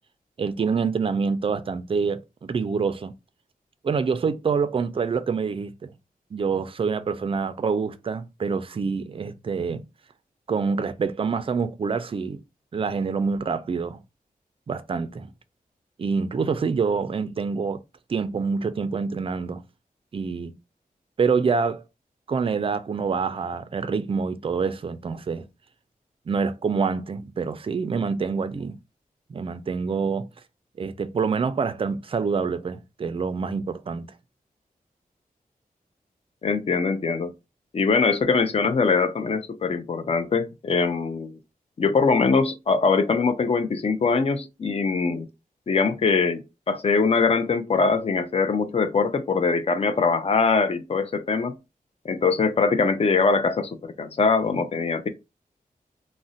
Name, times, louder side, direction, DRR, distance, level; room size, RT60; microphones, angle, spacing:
voice 1, 0.4-3.1 3.8-5.9 6.3-9.8 10.5-12.4 12.7-14.0 14.7-15.3 16.0-17.8 18.1-19.6 20.1-20.5 21.2-21.8 22.3-25.5 26.3-28.8 29.3-30.3 30.8-34.1, right 5 dB, 35° right, 0.3 m, -26 dB
voice 2, 36.4-37.3 37.7-41.4 41.8-45.3 45.7-51.5 52.0-55.1, left 4 dB, 40° left, 0.4 m, -22 dB
2.4 x 2.1 x 3.9 m
wide cardioid pair, 115°, 15 cm